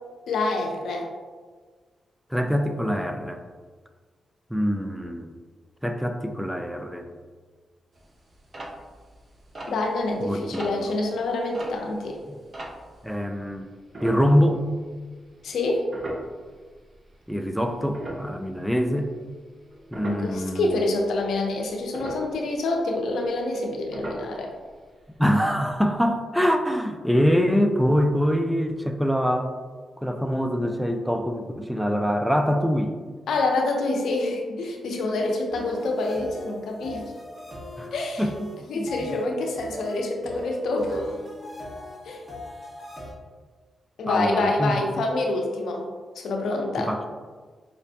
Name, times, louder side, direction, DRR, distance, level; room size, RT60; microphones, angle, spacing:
voice 1, 0.3-1.1 9.7-12.2 15.4-15.9 20.0-24.5 33.3-37.1 37.9-38.3 38.7-41.1 42.0-42.2 44.0-45.9 46.2-46.9, left 2 dB, 80° left, 1 dB, 0.5 m, -26 dB
voice 2, 2.3-3.4 4.5-5.3 5.8-7.1 10.2-10.9 13.0-13.7 14.0-14.7 17.3-19.1 19.9-20.8 25.2-29.5 30.0-32.9 37.8-38.9 44.1-44.7 46.8-47.0, equal, 5° right, 6 dB, 0.4 m, -24 dB
sound 1, 8.0-13.2 13.9-14.9 15.2-15.4 15.8-17.2 17.6-20.5 20.8-21.3 21.7-23.7 23.9-24.7 25.0-25.1 25.4-25.6 25.9-26.0, right 1 dB, 45° right, 0.6 m, -39 dB
sound 2, 35.5-43.1, left 1 dB, 20° right, 1.3 m, -40 dB
4.9 x 2.1 x 2.6 m, 1.5 s
supercardioid pair, 50°, 0 cm